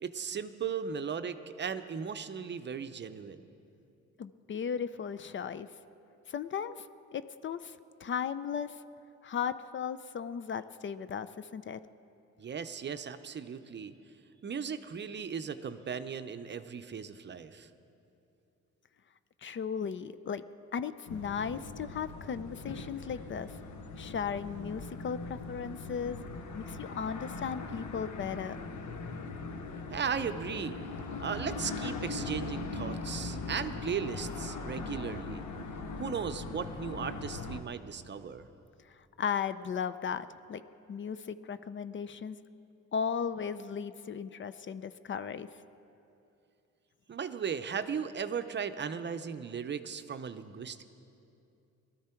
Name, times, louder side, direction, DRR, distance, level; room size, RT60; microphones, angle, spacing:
voice 1, 0.0-3.5 12.4-13.9 14.4-17.7 29.9-30.8 31.2-35.4 36.0-38.5 47.1-50.8, right 6 dB, 35° right, 10 dB, 0.6 m, -37 dB
voice 2, 4.2-5.7 6.3-6.9 7.1-8.8 9.2-11.8 19.4-20.4 20.7-23.5 24.0-26.2 26.6-28.6 39.2-40.6 40.9-42.4 42.9-45.5, left 7 dB, 40° left, 13 dB, 0.5 m, -36 dB
sound 1, 21.1-37.6, left 3 dB, 65° left, 1.1 m, -40 dB
19.5 x 13.0 x 4.5 m, 2.7 s
cardioid pair, 90°, 30 cm